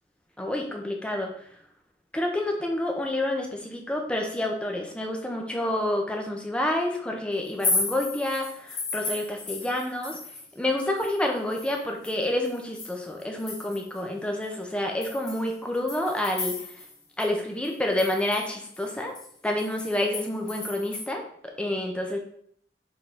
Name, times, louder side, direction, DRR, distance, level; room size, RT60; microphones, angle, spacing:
voice 1, 0.4-1.3 2.1-10.2 10.6-16.5 17.2-19.1 19.4-21.2 21.6-22.2, left 1 dB, 5° left, 1 dB, 1.0 m, -28 dB
sound 1, 7.4-10.5 10.8-14.0 14.4-14.5 15.0-16.9 17.2-17.3 17.6-21.1, left 3 dB, 25° left, 2.1 m, -34 dB
6.8 x 4.0 x 3.9 m, 0.63 s
head